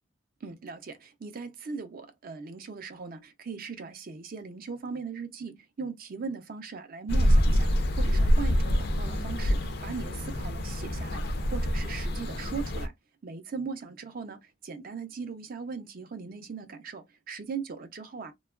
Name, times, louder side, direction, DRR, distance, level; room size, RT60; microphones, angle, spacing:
voice 1, 0.4-11.2 11.5-12.9 13.2-18.3, right 5 dB, 50° right, 0.5 m, -39 dB
sound 1, 7.1-12.9, equal, 55° left, 0.5 m, -26 dB
2.8 x 2.3 x 2.3 m
head